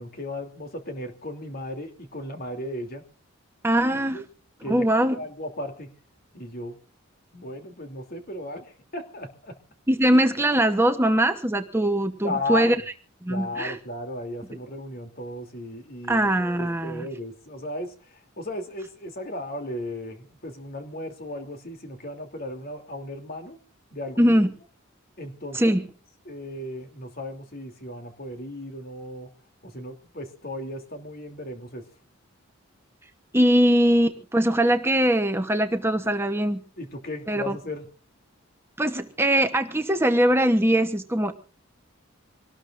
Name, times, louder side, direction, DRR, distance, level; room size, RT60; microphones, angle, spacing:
voice 1, 0.0-3.0 4.1-4.2 4.6-5.9 6.3-6.8 7.3-9.6 12.2-12.8 13.3-16.3 16.5-23.6 23.9-24.4 25.2-25.8 26.2-29.3 29.6-31.9 36.8-37.9, left 1 dB, 45° left, 5 dB, 3.0 m, -35 dB
voice 2, 3.6-4.2 4.7-5.2 9.9-12.8 13.2-13.8 16.1-17.0 24.2-24.5 25.5-25.8 33.3-36.6 37.3-37.6 38.8-41.4, right 1 dB, 10° right, 6 dB, 1.0 m, -21 dB
26.0 x 19.0 x 2.6 m, 0.39 s
head